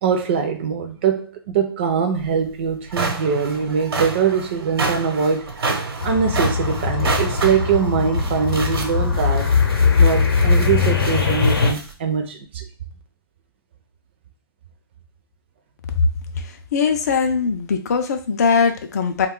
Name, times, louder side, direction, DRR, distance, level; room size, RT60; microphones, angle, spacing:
voice 1, 0.0-9.5 10.0-12.6, right 6 dB, 25° right, 0.4 m, -22 dB
sound 1, 2.2-2.3 2.7-11.9, right 3 dB, 75° right, 0.9 m, -29 dB
sound 2, 6.0-11.7, left 5 dB, 60° left, 0.7 m, -20 dB
voice 2, 16.7-19.3, left 5 dB, 45° left, 0.4 m, -20 dB
2.4 x 2.3 x 3.6 m
hypercardioid pair, 165°, 13 cm